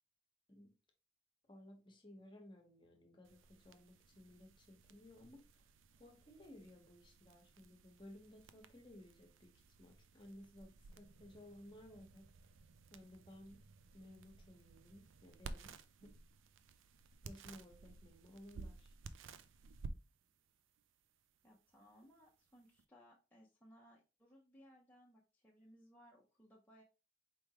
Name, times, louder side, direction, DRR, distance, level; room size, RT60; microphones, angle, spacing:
voice 1, 1.5-5.7 5.9-12.5 12.9-13.6 13.9-16.1 17.2-18.9, left 1 dB, 25° left, 1.1 m, -58 dB
sound 1, 3.2-22.8, right 3 dB, 80° right, 0.4 m, -56 dB
voice 2, 21.4-26.8, equal, 10° left, 0.7 m, -64 dB
4.6 x 3.4 x 2.9 m
head